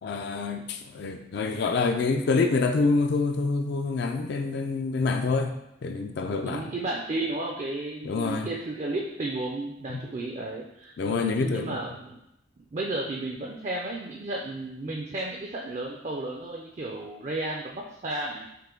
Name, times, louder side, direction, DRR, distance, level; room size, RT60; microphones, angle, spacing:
voice 1, 0.0-6.7 8.0-8.5 9.9-10.1 11.0-11.8, left 4 dB, 55° left, 5 dB, 0.3 m, -27 dB
voice 2, 6.4-12.2 12.7-18.5, right 2 dB, 35° right, -1 dB, 0.4 m, -33 dB
5.6 x 2.1 x 3.7 m, 0.83 s
head